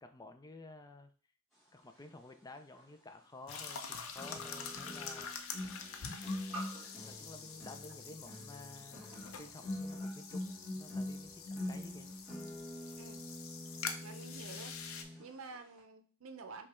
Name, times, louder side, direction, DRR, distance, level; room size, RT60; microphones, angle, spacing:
voice 1, 0.0-1.1 1.7-5.4 6.3-6.6 7.0-12.1, left 2 dB, 20° left, 8 dB, 0.4 m, -53 dB
sound 1, 2.8-2.9 4.2-15.3 15.5-15.8, left 1 dB, ahead, 1.9 m, -44 dB
sound 2, 3.5-15.0, left 6 dB, 75° left, 0.6 m, -46 dB
voice 2, 14.0-16.7, right 4 dB, 75° right, 8 dB, 0.6 m, -50 dB
5.2 x 2.3 x 4.2 m, 0.41 s
head